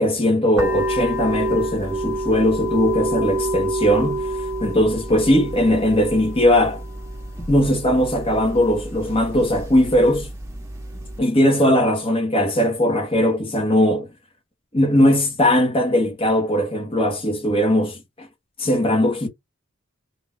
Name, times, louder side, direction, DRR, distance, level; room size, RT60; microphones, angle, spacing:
voice 1, 0.0-4.3 4.6-6.8 7.5-10.3 11.2-14.1 14.7-18.3 18.6-19.3, left 1 dB, 25° left, 1.5 m, -19 dB
sound 1, 0.6-11.2, right 1 dB, 15° right, 1.9 m, -28 dB
4.1 x 2.9 x 3.6 m
head